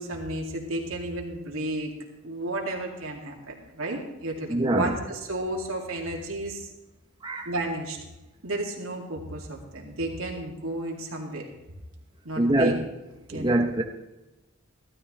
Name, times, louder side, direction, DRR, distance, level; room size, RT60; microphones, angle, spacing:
voice 1, 0.0-1.9 2.2-6.7 7.5-8.0 8.4-11.5 12.2-12.7 13.3-13.6, right 1 dB, 85° right, 0 dB, 2.3 m, -32 dB
voice 2, 4.5-5.0 7.2-7.5 12.4-12.8 13.3-13.8, right 1 dB, 20° right, 1 dB, 0.7 m, -24 dB
15.0 x 13.0 x 3.2 m, 1.0 s
head